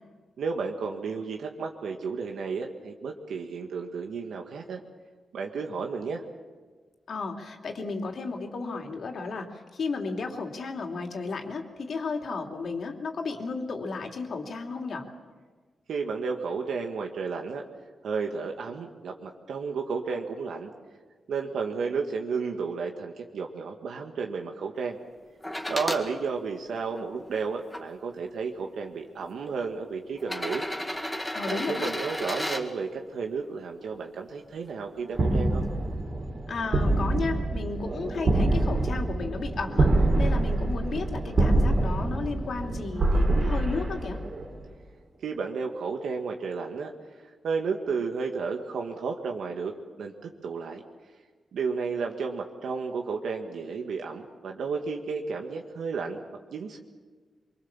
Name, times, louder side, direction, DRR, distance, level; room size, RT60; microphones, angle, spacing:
voice 1, 0.4-4.8 5.3-6.2 15.9-17.6 18.0-20.7 21.3-25.0 25.7-30.7 31.5-35.6 45.2-46.9 47.4-49.7 50.0-50.8 51.5-56.2 56.5-56.8, right 5 dB, 90° right, 2 dB, 1.9 m, -32 dB
voice 2, 7.1-15.1 31.3-31.9 36.5-39.9 40.2-44.2, left 4 dB, 60° left, 3 dB, 3.1 m, -33 dB
sound 1, 25.4-26.0 26.8-27.8 28.8-28.9 30.2-32.6 34.5-34.6, left 1 dB, 5° left, 2.2 m, -33 dB
sound 2, 35.1-44.6, right 2 dB, 40° right, 3.5 m, -25 dB
25.0 x 24.5 x 7.4 m, 1.4 s
wide cardioid pair, 135°, 0 cm